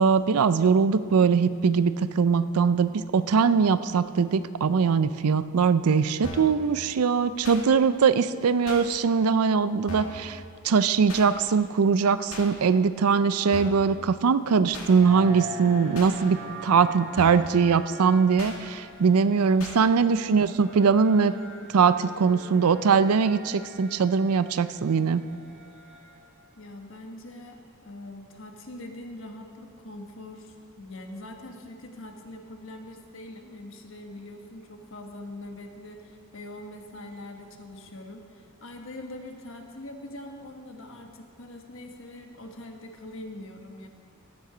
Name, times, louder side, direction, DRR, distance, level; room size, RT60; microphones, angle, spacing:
voice 1, 0.0-10.4 10.6-21.3 21.7-25.2, right 5 dB, 85° right, 14 dB, 0.5 m, -22 dB
sound 1, 6.2-6.6 7.4-7.6 8.7-8.8 9.9-10.2 11.1-11.3 12.3-12.5 13.5-13.9 14.7-14.9 15.9-16.1 17.2-17.5 18.4-18.6 19.6-19.8, left 1 dB, 75° left, 2.1 m, -38 dB
sound 2, 15.0-26.4, equal, 50° right, 1.9 m, -43 dB
voice 2, 26.6-43.9, left 1 dB, 60° left, 3 dB, 1.3 m, -43 dB
15.0 x 9.5 x 5.0 m, 2.3 s
head